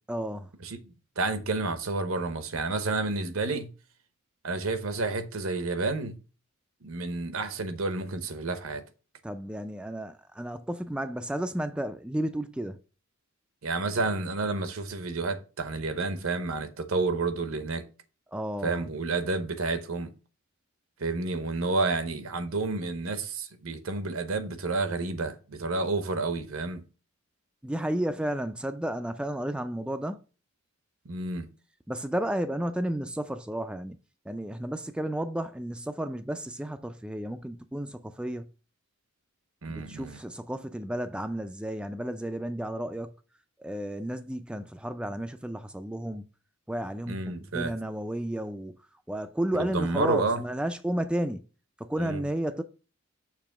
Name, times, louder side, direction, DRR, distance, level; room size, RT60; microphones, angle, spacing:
voice 1, 0.1-0.5 9.2-12.8 18.3-18.9 27.6-30.2 31.9-34.0 34.3-38.5 39.7-43.1 43.6-46.3 46.7-48.8 49.1-51.4 51.8-52.6, right 1 dB, 5° right, 0.3 m, -32 dB
voice 2, 1.2-3.7 4.4-6.2 6.8-8.8 13.6-17.8 18.6-20.1 21.0-26.8 31.0-31.5 39.6-40.2 47.1-47.7 49.6-50.4 52.0-52.2, right 3 dB, 75° right, 0.9 m, -30 dB
6.8 x 3.0 x 5.9 m
head